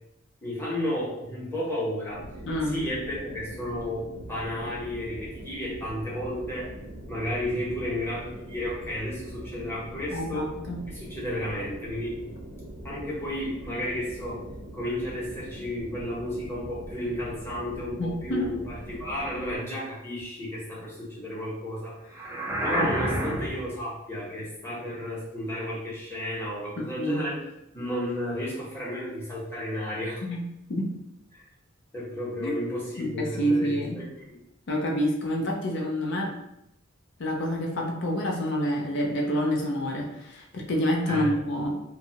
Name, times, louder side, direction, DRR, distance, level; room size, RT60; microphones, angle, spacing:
voice 1, 0.4-2.3 2.7-6.7 7.1-10.5 10.9-12.1 12.8-14.4 14.7-22.0 22.6-27.4 27.7-30.2 31.3-31.4 31.9-33.7 33.9-34.3 41.1-41.3, left 1 dB, 10° left, -7 dB, 0.9 m, -32 dB
sound 1, 2.1-19.6, right 1 dB, 75° right, 0.5 m, -42 dB
voice 2, 2.4-2.8 10.1-10.8 18.0-18.5 26.9-27.2 30.2-30.4 30.7-30.9 32.4-32.6 33.0-34.0 34.7-36.3 37.2-41.7, equal, 60° left, 0 dB, 0.5 m, -28 dB
sound 2, 22.1-23.7, right 1 dB, 15° right, 0.5 m, -28 dB
2.7 x 2.3 x 2.7 m, 0.83 s
head